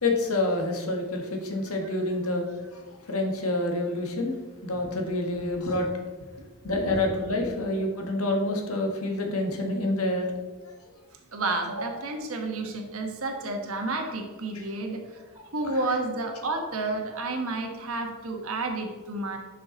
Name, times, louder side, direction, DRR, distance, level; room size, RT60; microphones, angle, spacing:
voice 1, 0.0-2.5 3.1-4.3 4.6-5.9 6.6-10.2, left 2 dB, 75° left, 2 dB, 1.6 m, -27 dB
voice 2, 11.3-15.0 15.5-19.4, right 2 dB, 70° right, 3 dB, 1.2 m, -31 dB
10.5 x 5.8 x 4.0 m, 1.4 s
head